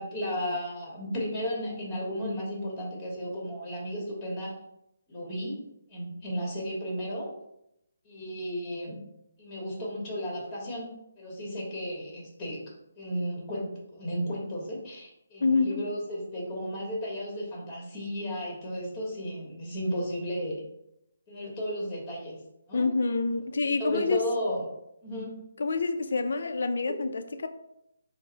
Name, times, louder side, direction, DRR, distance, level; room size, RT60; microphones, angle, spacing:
voice 1, 0.0-4.5 5.1-5.6 5.9-7.3 8.0-9.0 9.4-10.9 11.2-12.6 13.0-20.6 21.3-22.4 22.7-22.9 23.8-24.7 25.0-25.3 26.9-27.0, equal, 20° left, -3 dB, 1.3 m, -34 dB
voice 2, 15.4-15.8 22.7-24.2 25.6-27.5, left 3 dB, 65° left, 8 dB, 0.4 m, -27 dB
3.8 x 2.1 x 3.9 m, 0.80 s
hypercardioid pair, 160°, 0 cm